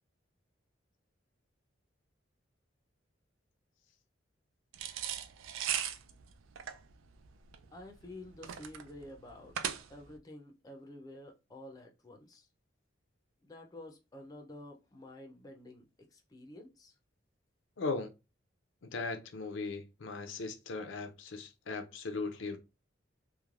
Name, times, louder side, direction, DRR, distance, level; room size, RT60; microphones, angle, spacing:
sound 1, 4.7-10.2, right 9 dB, 90° right, 0.3 m, -38 dB
voice 1, 7.7-12.5 13.4-16.9, left 1 dB, 20° left, 0.4 m, -50 dB
voice 2, 17.8-18.1 18.8-22.6, left 3 dB, 80° left, 0.5 m, -38 dB
3.1 x 2.1 x 2.4 m
head